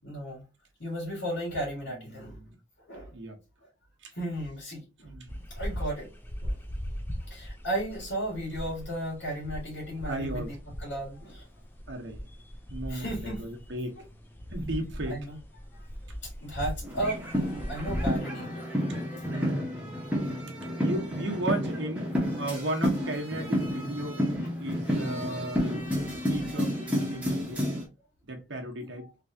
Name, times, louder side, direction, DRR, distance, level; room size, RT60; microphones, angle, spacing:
voice 1, 0.0-0.4 0.8-2.4 2.9-3.1 4.1-5.1 5.5-6.1 6.4-6.5 7.2-11.4 12.9-13.4 14.0-14.1 15.1-15.4 15.7-15.9 16.2-18.5 26.2-26.3 28.8-28.9, right 1 dB, 70° left, 1.8 m, -35 dB
voice 2, 2.1-2.6 3.1-3.4 4.0-4.1 5.0-5.3 10.0-10.5 11.9-12.2 12.7-14.0 14.5-15.2 19.3-20.0 20.8-24.2 24.6-27.7 28.3-29.1, right 1 dB, 75° right, 1.0 m, -35 dB
sound 1, 5.3-18.2, equal, 10° left, 0.5 m, -39 dB
sound 2, 16.8-27.8, equal, 5° right, 1.0 m, -30 dB
3.3 x 3.0 x 2.7 m
head